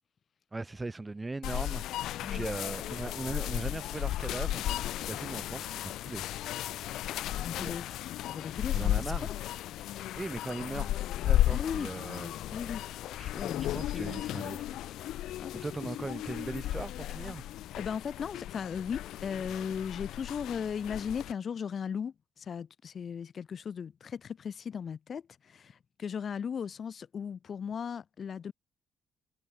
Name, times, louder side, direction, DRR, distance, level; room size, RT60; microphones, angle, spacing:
voice 1, 0.5-1.8 2.3-6.2 7.6-7.8 8.7-9.3 10.1-10.9 11.2-12.3 13.2-13.3 13.7-14.7 15.6-17.4, right 3 dB, 20° right, 2.6 m, -39 dB
sound 1, 1.4-21.3, left 13 dB, 85° left, 2.9 m, -34 dB
voice 2, 7.3-7.9 8.3-9.3 9.7-9.9 11.5-11.9 12.5-12.8 13.3-14.1 15.4-15.6 16.0-16.1 17.7-28.5, left 7 dB, 50° left, 3.7 m, -37 dB
cardioid pair, 90°, 0 cm